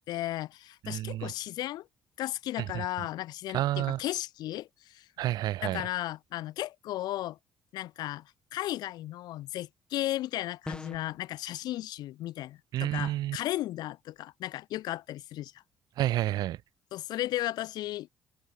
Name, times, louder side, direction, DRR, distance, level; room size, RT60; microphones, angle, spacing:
voice 1, 0.1-1.9 2.2-5.1 5.6-7.4 7.7-8.2 8.5-15.5 16.9-18.1, left 15 dB, 80° left, 1.7 m, -35 dB
voice 2, 0.8-1.3 2.7-2.9 3.5-4.0 5.2-5.8 12.7-13.4 16.0-16.6, right 14 dB, 75° right, 0.5 m, -29 dB
sound 1, 10.7-11.2, left 2 dB, 15° left, 1.8 m, -40 dB
supercardioid pair, 70°, 7 cm